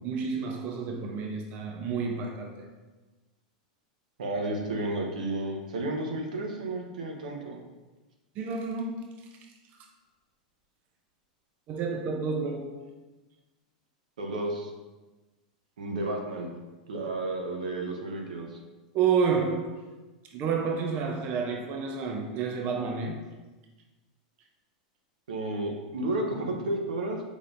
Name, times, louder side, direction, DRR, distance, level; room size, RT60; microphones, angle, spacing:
voice 1, 0.0-2.7 8.4-9.0 11.7-12.8 18.9-19.8 20.3-23.2, right 5 dB, 45° right, 0.6 m, -29 dB
voice 2, 4.2-7.6 14.2-14.7 15.8-16.5 16.9-18.6 25.3-27.2, right 2 dB, 85° right, 0.8 m, -32 dB
5.0 x 4.1 x 2.6 m
hypercardioid pair, 110°, 4 cm